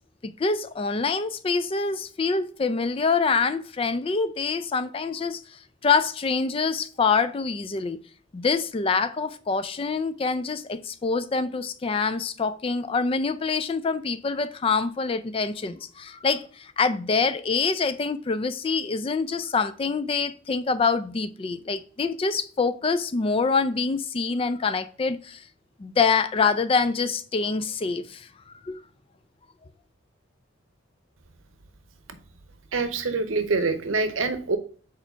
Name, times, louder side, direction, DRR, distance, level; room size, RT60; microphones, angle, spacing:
voice 1, 0.2-8.0 8.3-25.5 25.8-28.8, left 4 dB, 25° left, 0.3 m, -25 dB
voice 2, 32.7-34.6, right 3 dB, 80° right, 0.8 m, -25 dB
4.8 x 4.4 x 5.5 m
head